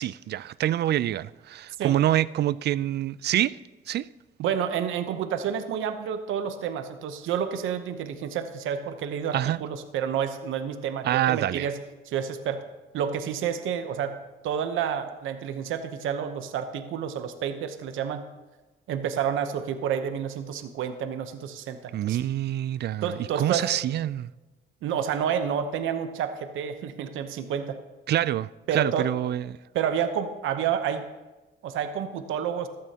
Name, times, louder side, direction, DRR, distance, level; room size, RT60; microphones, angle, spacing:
voice 1, 0.0-3.6 3.9-4.1 9.3-9.6 11.0-11.7 21.9-24.3 28.1-29.5, right 12 dB, 55° right, 0.4 m, -26 dB
voice 2, 4.4-11.8 12.1-12.6 12.9-14.2 14.4-18.2 18.9-22.2 23.0-23.7 24.8-27.8 28.7-29.1 29.7-31.0 31.6-32.7, right 8 dB, 85° right, 0.9 m, -29 dB
15.0 x 12.5 x 2.9 m
cardioid pair, 90°, 20 cm